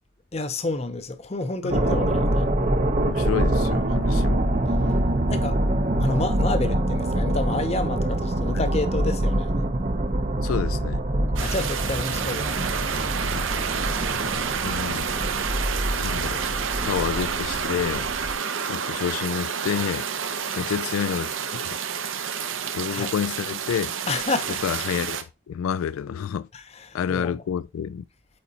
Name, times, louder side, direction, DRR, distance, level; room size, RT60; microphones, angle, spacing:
voice 1, 0.3-2.5 5.3-5.6 6.0-9.5 11.4-12.6 20.5-20.7 22.9-23.1 24.1-24.6 26.5-27.3, left 2 dB, 30° left, 0.6 m, -29 dB
voice 2, 1.6-2.3 3.0-4.5 8.5-8.7 10.4-11.0 13.3-13.5 14.6-15.1 16.0-16.4 16.8-18.1 18.6-20.1 20.6-21.7 22.7-23.9 24.6-25.2 25.5-26.5 26.9-28.0, left 8 dB, 90° left, 0.3 m, -29 dB
sound 1, 1.7-18.3, right 1 dB, 35° right, 0.6 m, -25 dB
sound 2, 11.4-25.2, right 7 dB, 70° right, 0.8 m, -29 dB
8.6 x 4.1 x 2.7 m
head